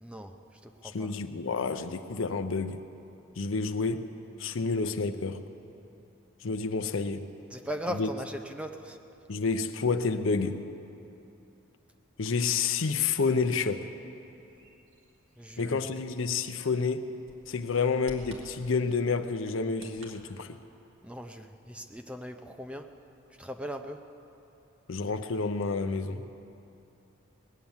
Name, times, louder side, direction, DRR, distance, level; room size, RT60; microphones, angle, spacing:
voice 1, 0.0-1.1 7.5-9.0 15.4-15.8 21.0-22.9 23.4-24.0, equal, 5° right, 5 dB, 0.5 m, -39 dB
voice 2, 0.9-2.8 3.4-4.1 4.4-5.4 6.4-7.3 8.0-8.1 9.3-10.6 12.2-13.9 15.6-17.1 17.5-20.6 24.9-26.2, left 4 dB, 65° left, 9 dB, 0.7 m, -29 dB
Bird vocalization bird call bird song, 14.1-20.1, right 1 dB, 80° right, 2.2 m, -55 dB
20.0 x 9.2 x 7.2 m, 2.8 s
head